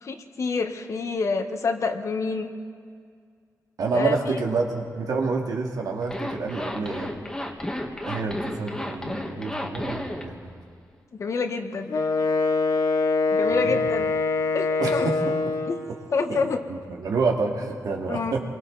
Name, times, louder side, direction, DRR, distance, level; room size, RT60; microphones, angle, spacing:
voice 1, 0.0-2.5 3.9-4.2 11.1-12.0 13.3-14.1 14.5-15.1 15.7-15.8 16.1-16.6 18.1-18.3, left 4 dB, 50° left, 6 dB, 1.3 m, -27 dB
voice 2, 3.8-7.1 8.0-10.4 13.5-13.8 14.8-15.4 16.3-18.4, right 4 dB, 85° right, 0 dB, 2.4 m, -28 dB
Zipper (clothing), 6.0-10.3, left 1 dB, 10° left, 1.7 m, -32 dB
Wind instrument woodwind instrument, 11.9-15.9, left 3 dB, 75° left, 2.1 m, -24 dB
28.0 x 23.0 x 4.0 m, 2.1 s
wide cardioid pair, 145°, 6 cm